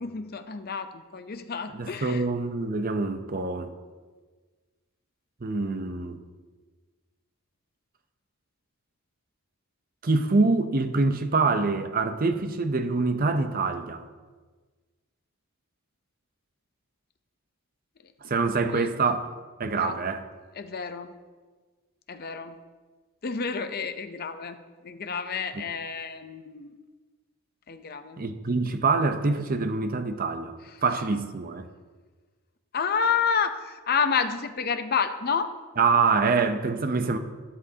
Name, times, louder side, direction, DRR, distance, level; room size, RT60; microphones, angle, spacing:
voice 1, 0.0-2.3 18.7-18.9 19.8-20.0 20.6-21.1 22.1-22.6 23.2-24.6 24.8-26.7 27.7-28.2 32.7-35.5, left 6 dB, 45° left, 9 dB, 0.6 m, -29 dB
voice 2, 1.7-3.7 5.4-6.2 10.0-14.0 18.3-19.3 19.6-20.2 25.5-25.6 28.2-30.5 30.8-31.7 35.8-37.2, right 4 dB, 40° right, 8 dB, 0.7 m, -25 dB
12.5 x 11.0 x 2.8 m, 1.4 s
head